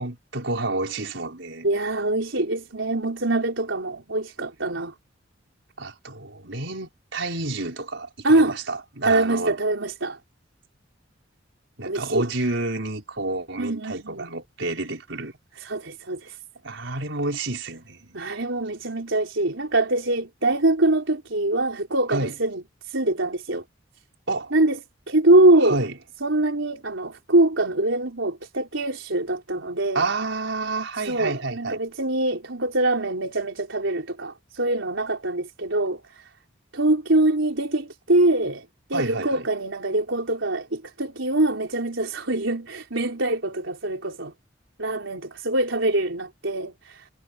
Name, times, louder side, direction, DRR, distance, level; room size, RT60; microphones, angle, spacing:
voice 1, 0.0-1.7 5.8-9.5 11.8-15.3 16.6-18.2 22.1-22.3 24.3-24.5 25.6-26.0 29.9-31.8 38.9-39.4, right 2 dB, 70° right, 5.9 m, -29 dB
voice 2, 1.6-4.9 8.2-8.6 9.0-10.2 11.8-12.3 13.6-14.3 15.6-16.4 18.1-22.6 22.9-23.6 24.5-24.8 25.1-25.9 26.2-30.0 31.0-36.0 36.7-44.3 44.8-47.0, right 2 dB, 90° right, 4.2 m, -23 dB
head